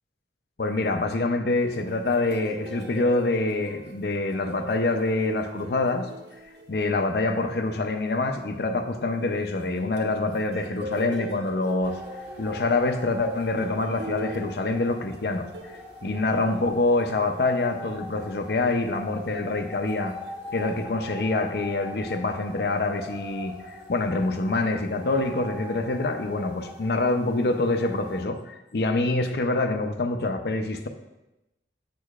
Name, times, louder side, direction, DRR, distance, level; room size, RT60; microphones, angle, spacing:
voice 1, 0.6-6.1 6.7-12.0 12.4-15.5 16.0-20.2 20.5-30.9, left 2 dB, 60° left, 7 dB, 0.6 m, -26 dB
sound 1, 1.6-7.4 9.2-17.5 18.1-18.4 19.5-20.9, right 2 dB, 80° right, 0.9 m, -42 dB
sound 2, 11.8-28.2, equal, 15° right, 1.4 m, -42 dB
8.3 x 6.4 x 2.4 m, 0.94 s
head